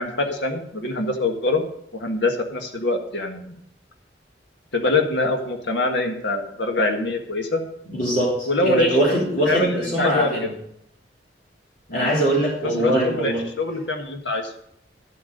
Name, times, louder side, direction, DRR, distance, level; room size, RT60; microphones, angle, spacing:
voice 1, 0.0-1.7 1.9-3.5 4.7-7.6 8.5-10.3 11.9-12.1 12.6-14.5, left 2 dB, 85° left, 5 dB, 1.6 m, -24 dB
voice 2, 7.9-10.5 11.9-13.4, right 1 dB, 50° left, -5 dB, 3.3 m, -22 dB
11.0 x 8.1 x 5.2 m, 0.73 s
head